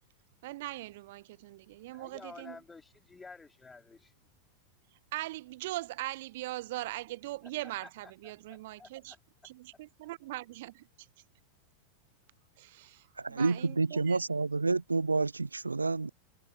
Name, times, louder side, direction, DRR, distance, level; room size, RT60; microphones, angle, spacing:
voice 1, 0.4-2.6 5.1-9.2 9.4-11.1 12.6-14.2, right 18 dB, 50° right, 0.8 m, -41 dB
voice 2, 1.9-4.1 7.8-7.9 8.5-9.2 9.7-9.8, left 4 dB, 10° left, 3.1 m, -51 dB
voice 3, 13.2-16.1, right 3 dB, 80° right, 0.3 m, -29 dB
figure-of-eight pair, 90°, 0 cm